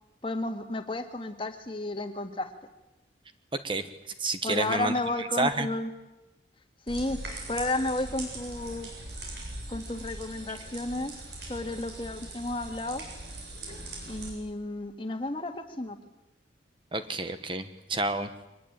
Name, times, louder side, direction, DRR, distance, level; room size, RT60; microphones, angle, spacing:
voice 1, 0.2-2.5 4.4-5.9 6.9-7.2 7.5-8.9 9.7-11.1 11.4-13.1 14.1-16.0, left 2 dB, 30° left, 7 dB, 1.9 m, -32 dB
voice 2, 4.2-4.9 5.4-5.7 16.9-18.3, right 2 dB, 25° right, 9 dB, 1.1 m, -29 dB
sound 1, 6.9-14.3, right 2 dB, 65° right, 7.8 m, -41 dB
24.0 x 20.5 x 8.8 m, 0.99 s
head